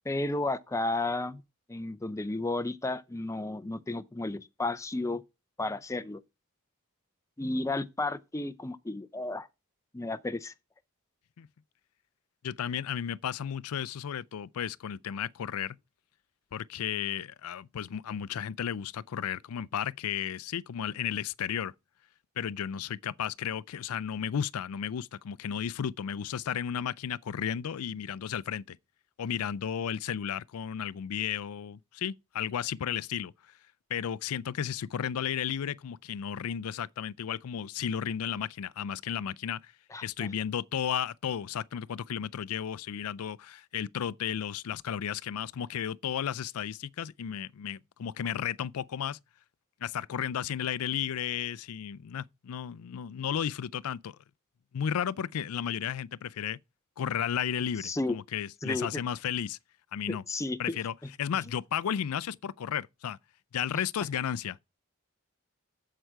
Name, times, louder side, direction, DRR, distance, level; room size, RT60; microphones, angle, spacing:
voice 1, 0.1-1.4 1.7-5.2 5.6-6.2 7.4-9.5 9.9-10.5 39.9-40.1 57.8-58.2 58.6-59.0 60.1-60.8 63.7-63.8, left 2 dB, 15° left, 0.5 m, -32 dB
voice 2, 12.4-15.8 16.5-21.7 22.4-28.8 29.2-33.3 33.9-39.7 40.0-49.2 49.8-54.2 54.7-56.6 57.0-59.6 59.9-60.2 60.6-63.2 63.5-64.7, left 8 dB, 80° left, 0.4 m, -33 dB
8.0 x 7.6 x 4.6 m
head